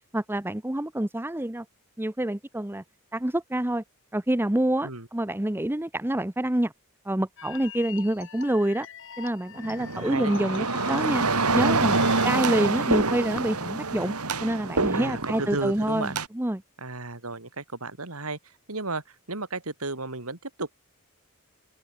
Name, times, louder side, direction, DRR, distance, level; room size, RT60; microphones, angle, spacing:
voice 1, 0.1-1.6 2.0-2.8 3.1-3.8 4.1-6.7 7.0-8.9 9.2-11.2 11.5-12.0 12.2-14.1 14.4-16.6, right 1 dB, 10° right, 0.8 m, -27 dB
sound 1, 7.4-12.4, left 8 dB, 60° left, 7.1 m, -43 dB
sound 2, 9.6-16.3, right 3 dB, 90° right, 3.3 m, -26 dB
voice 2, 9.8-10.7 12.0-12.3 14.9-16.2 16.8-20.8, right 3 dB, 70° right, 3.6 m, -34 dB
open air
head